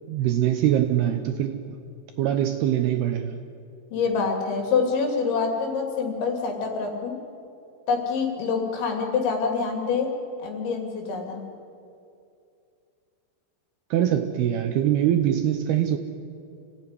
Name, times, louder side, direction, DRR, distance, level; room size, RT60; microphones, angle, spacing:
voice 1, 0.1-1.6 2.2-3.4 13.9-16.0, right 11 dB, 75° right, 7 dB, 2.4 m, -23 dB
voice 2, 3.9-7.2 7.9-10.1 10.4-11.4, left 5 dB, 75° left, 2 dB, 5.1 m, -26 dB
27.0 x 17.0 x 9.8 m, 2.5 s
omnidirectional pair, 5.4 m